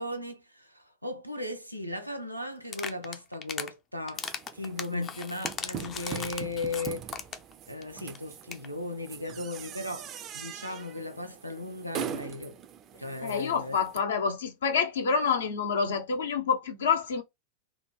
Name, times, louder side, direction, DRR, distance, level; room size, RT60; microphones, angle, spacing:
voice 1, 0.0-7.1 7.7-12.6 13.0-13.8, left 2 dB, 90° right, 0.6 m, -37 dB
sound 1, 2.6-3.7 4.1-7.5 7.8-7.9 8.1-8.2 8.4-8.7, left 7 dB, 30° left, 0.4 m, -37 dB
sound 2, 4.1-14.0, right 9 dB, 30° right, 0.4 m, -42 dB
voice 2, 13.2-17.2, left 6 dB, 65° left, 0.7 m, -27 dB
3.5 x 2.0 x 3.2 m
figure-of-eight pair, 90°, 0 cm